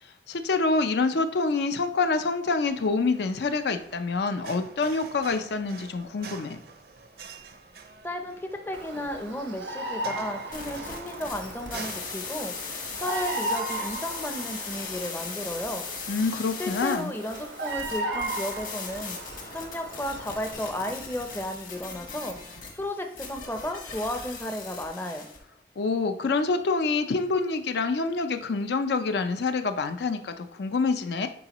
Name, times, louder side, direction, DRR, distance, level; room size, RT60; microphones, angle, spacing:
voice 1, 0.3-6.6 16.1-17.1 25.8-31.3, left 4 dB, 75° left, 8 dB, 0.5 m, -26 dB
sound 1, 2.7-14.2, right 4 dB, 60° right, 0.5 m, -47 dB
voice 2, 8.0-15.9 16.6-19.2 19.5-22.4 22.7-25.3, left 1 dB, 10° left, 5 dB, 0.5 m, -34 dB
Bird vocalization bird call bird song, 8.7-20.5, right 2 dB, 90° right, 1.0 m, -36 dB
sound 2, 10.5-25.4, left 5 dB, 50° left, 1.3 m, -39 dB
9.9 x 3.8 x 3.0 m, 0.68 s
head